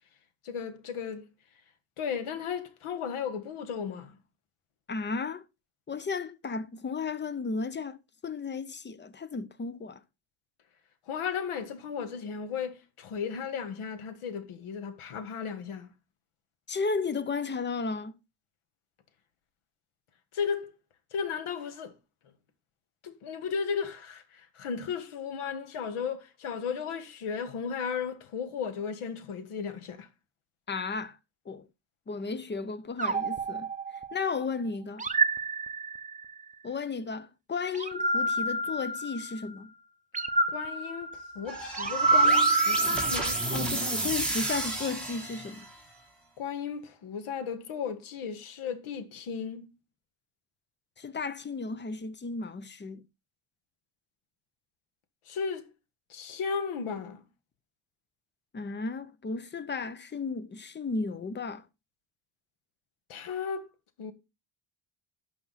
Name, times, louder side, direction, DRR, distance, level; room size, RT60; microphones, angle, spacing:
voice 1, 0.4-1.3 2.0-4.2 11.1-15.9 20.3-20.8 21.1-21.9 23.0-30.1 40.5-43.4 46.4-49.7 55.3-55.7 56.1-57.2 63.1-63.7 64.0-64.1, left 6 dB, 85° left, 1.7 m, -35 dB
voice 2, 4.9-5.4 5.9-10.0 16.7-18.2 30.7-31.2 31.5-31.7 32.1-35.0 36.6-39.7 43.5-45.7 51.0-53.0 58.5-61.7, left 4 dB, 20° left, 0.7 m, -34 dB
sound 1, 33.0-34.4 35.0-36.3 37.7-39.5 40.1-43.7, right 3 dB, 15° right, 0.7 m, -28 dB
sound 2, 41.5-45.8, right 2 dB, ahead, 3.4 m, -32 dB
11.5 x 6.0 x 4.1 m
cardioid pair, 120°, 49 cm